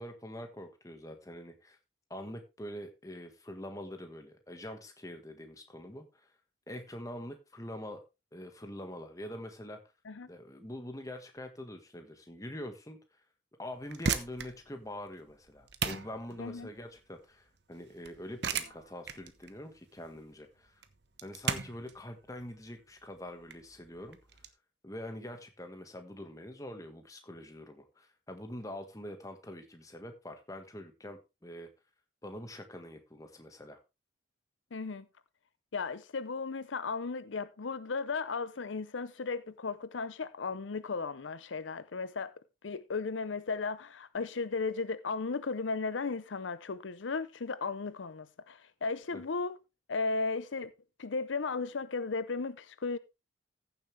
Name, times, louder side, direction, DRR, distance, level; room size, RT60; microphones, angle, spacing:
voice 1, 0.0-1.8 2.1-6.3 6.7-8.0 8.3-9.8 10.3-13.0 13.6-20.8 21.2-24.2 24.8-31.7 32.2-33.8 49.1-49.2, left 1 dB, 15° left, 1.5 m, -44 dB
sound 1, 13.7-24.5, right 5 dB, 60° right, 1.0 m, -38 dB
voice 2, 16.4-16.7 34.7-35.1 35.7-42.3 42.6-49.6 49.9-50.7 51.0-53.0, left 4 dB, 80° left, 0.7 m, -35 dB
15.0 x 7.2 x 3.3 m
head